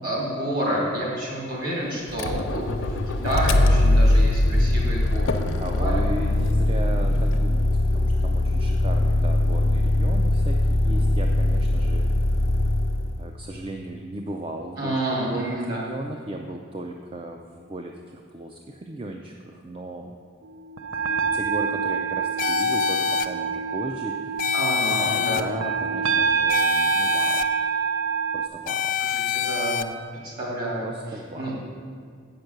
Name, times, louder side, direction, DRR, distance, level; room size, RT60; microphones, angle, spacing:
voice 1, 0.0-6.0 14.8-15.8 24.5-25.4 29.0-29.9 30.2-30.9 31.4-31.5, right 1 dB, 45° right, -4 dB, 2.7 m, -29 dB
Motor vehicle (road), 2.1-13.3, left 1 dB, 85° left, 0.7 m, -21 dB
voice 2, 5.6-12.1 13.2-20.2 21.3-24.5 25.0-27.5 28.3-29.0 30.8-31.6, right 1 dB, 25° right, 3 dB, 0.4 m, -36 dB
sound 1, 20.6-28.5, right 6 dB, 85° right, 0.7 m, -26 dB
sound 2, 22.4-23.3 24.4-25.4 26.5-27.4 28.7-29.8, left 8 dB, 40° left, 0.3 m, -25 dB
8.2 x 5.9 x 6.5 m, 2.1 s
head